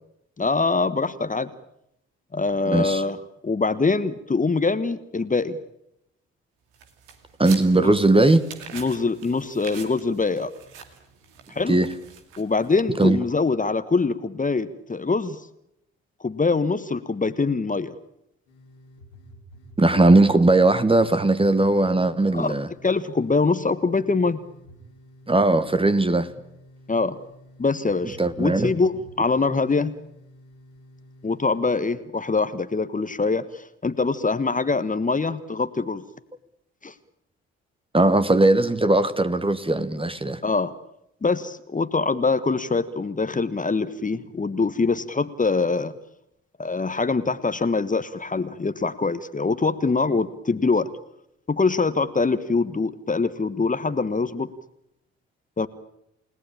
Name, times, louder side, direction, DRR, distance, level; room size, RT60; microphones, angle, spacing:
voice 1, 0.4-1.5 2.3-3.2 3.4-5.6 7.7-7.9 8.7-10.5 11.5-11.8 12.4-15.4 16.2-18.0 22.3-22.5 22.8-24.4 26.9-27.1 27.6-29.9 31.2-36.0 36.8-36.9 40.4-40.7 41.2-45.9 46.6-50.9 51.5-54.5 55.6-55.7, left 4 dB, 25° left, 1.4 m, -24 dB
voice 2, 2.7-3.0 7.4-8.5 11.7-11.9 13.0-13.2 19.8-22.7 25.3-26.3 28.2-28.7 37.9-40.4, right 2 dB, 15° right, 1.5 m, -19 dB
sound 1, 6.7-13.0, right 6 dB, 75° right, 2.6 m, -44 dB
sound 2, 18.5-31.6, equal, 85° left, 3.5 m, -49 dB
29.5 x 18.5 x 8.8 m
hypercardioid pair, 45°, 34 cm